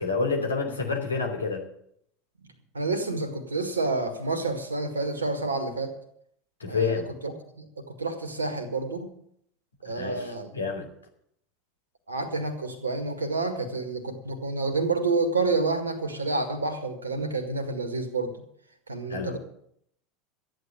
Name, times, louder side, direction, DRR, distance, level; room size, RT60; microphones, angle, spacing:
voice 1, 0.0-1.6 6.6-7.1 9.9-10.3 10.5-10.9 19.1-19.4, left 4 dB, 85° left, 3 dB, 3.0 m, -28 dB
voice 2, 2.7-5.9 6.7-7.7 8.0-9.1 9.8-10.6 12.1-18.4 18.9-19.4, right 3 dB, 80° right, 7 dB, 1.7 m, -29 dB
13.5 x 9.4 x 7.7 m, 0.70 s
figure-of-eight pair, 80°, 0 cm